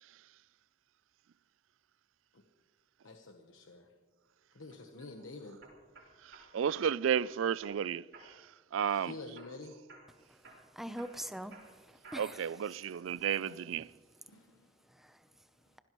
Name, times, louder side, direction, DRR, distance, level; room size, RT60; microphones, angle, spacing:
voice 1, 3.0-4.0 4.5-5.6 8.9-9.8 13.4-13.6 14.3-14.9 15.3-15.8, left 2 dB, 75° left, 1.1 m, -49 dB
sound 1, 4.7-5.1 5.6-6.8 7.1-7.8 8.1-8.5 8.8-9.6 9.9-10.1 10.4-12.5 12.9-13.4, right 3 dB, 60° right, 4.7 m, -55 dB
voice 2, 6.2-8.4 8.7-9.1 12.2-13.9, right 8 dB, 75° right, 0.4 m, -33 dB
voice 3, 10.3-12.4 14.9-15.2, equal, ahead, 0.6 m, -44 dB
26.5 x 16.5 x 3.1 m
head